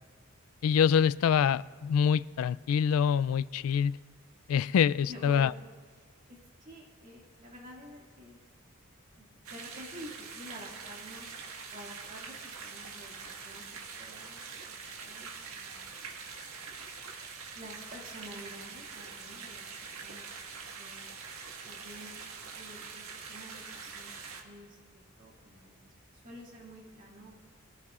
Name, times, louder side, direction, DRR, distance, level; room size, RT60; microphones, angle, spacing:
voice 1, 0.6-4.0 4.5-5.5, left 7 dB, 75° left, 18 dB, 0.3 m, -25 dB
voice 2, 5.1-5.5 6.0-8.4 9.2-11.3 11.7-16.0 17.6-21.1 21.6-22.2 22.5-27.3, equal, 35° right, -2 dB, 2.1 m, -50 dB
sound 1, 9.4-24.4, right 5 dB, 80° right, 1.6 m, -44 dB
23.0 x 15.0 x 2.4 m, 1.5 s
head